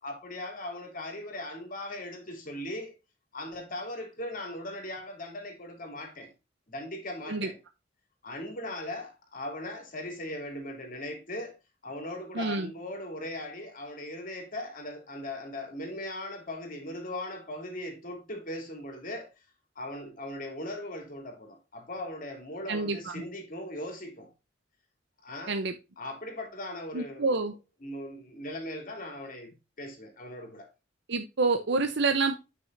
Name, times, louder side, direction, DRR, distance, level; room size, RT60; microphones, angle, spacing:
voice 1, 0.0-2.9 3.3-6.3 6.7-7.6 8.2-11.5 11.8-19.3 19.7-24.3 25.2-25.6 26.0-27.6 27.8-30.7, left 1 dB, 45° left, 3.1 m, -39 dB
voice 2, 12.3-12.7 22.7-23.2 25.5-25.7 26.9-27.5 31.1-32.3, right 3 dB, 65° right, 0.8 m, -28 dB
9.3 x 6.1 x 2.7 m
head